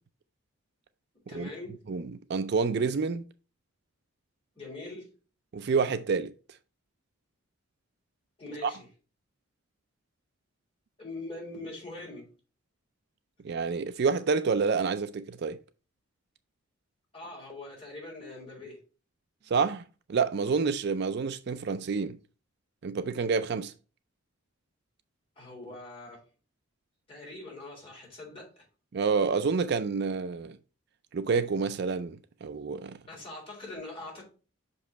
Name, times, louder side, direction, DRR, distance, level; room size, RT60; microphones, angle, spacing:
voice 1, 1.3-1.8 4.6-5.1 8.4-8.9 11.0-12.3 17.1-18.8 25.4-26.2 27.1-28.6 33.0-34.2, left 2 dB, 25° left, 3.8 m, -42 dB
voice 2, 1.9-3.2 5.5-6.3 8.6-8.7 13.4-15.6 19.5-22.2 22.8-23.7 28.9-30.6 31.1-33.0, right 5 dB, 50° right, 0.4 m, -28 dB
5.9 x 5.3 x 4.0 m
head